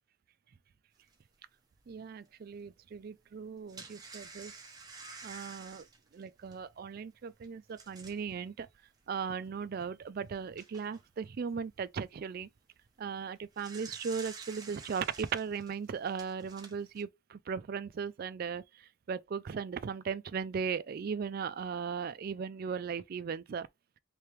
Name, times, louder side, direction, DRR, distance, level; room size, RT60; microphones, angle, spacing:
sound 1, 1.1-1.2 1.8-1.9 3.3-8.3 9.0-9.1 9.4-9.5 10.2-11.0 13.2-17.0, right 4 dB, 20° right, 0.7 m, -50 dB
voice 1, 1.9-4.5 5.2-5.9 6.1-8.7 9.1-12.5 13.0-23.7, right 6 dB, 45° right, 0.3 m, -37 dB
3.4 x 3.3 x 3.1 m
head